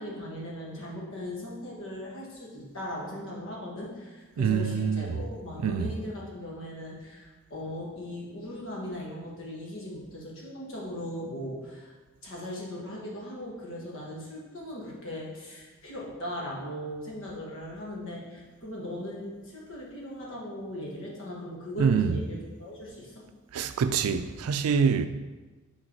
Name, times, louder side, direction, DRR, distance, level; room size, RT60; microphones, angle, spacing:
voice 1, 0.0-11.9 12.2-23.2, left 1 dB, 60° left, 1.6 m, -38 dB
voice 2, 4.4-5.1 5.6-5.9 21.8-22.1 23.5-25.1, right 6 dB, 85° right, 0.4 m, -25 dB
6.4 x 3.9 x 4.6 m
head